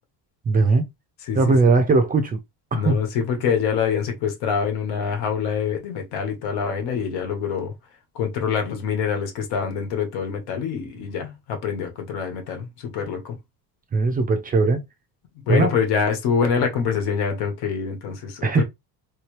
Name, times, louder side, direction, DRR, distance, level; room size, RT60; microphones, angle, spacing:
voice 1, 0.5-0.9 1.4-2.4 2.7-3.0 13.9-14.8 15.5-15.7 18.4-18.6, right 3 dB, 25° right, 0.4 m, -19 dB
voice 2, 1.2-1.7 2.7-7.7 8.1-13.4 15.5-18.6, left 6 dB, 80° left, 1.4 m, -25 dB
3.2 x 2.9 x 3.1 m
cardioid pair, 155°, 38 cm